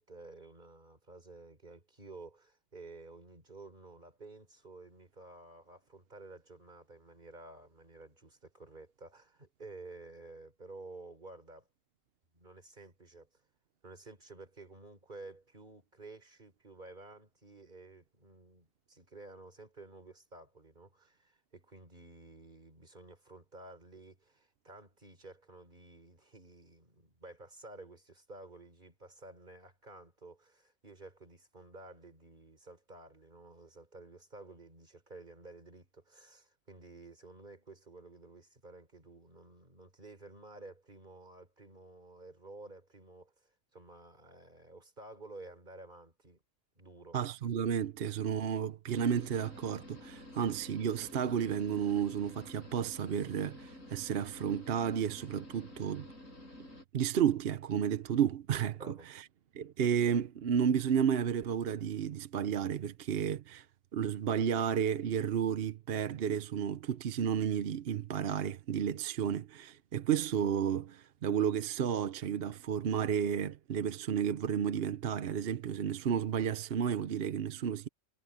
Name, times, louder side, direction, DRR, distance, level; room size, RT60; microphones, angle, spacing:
voice 1, 0.0-11.7 12.3-13.3 13.8-46.4 46.8-47.2 58.8-59.1, right 2 dB, 35° right, 3.8 m, -52 dB
voice 2, 47.1-56.1 56.9-59.3 59.5-63.7 63.9-77.9, right 8 dB, 55° right, 0.9 m, -32 dB
sound 1, 48.9-56.8, left 1 dB, 80° left, 7.4 m, -51 dB
omnidirectional pair, 1.4 m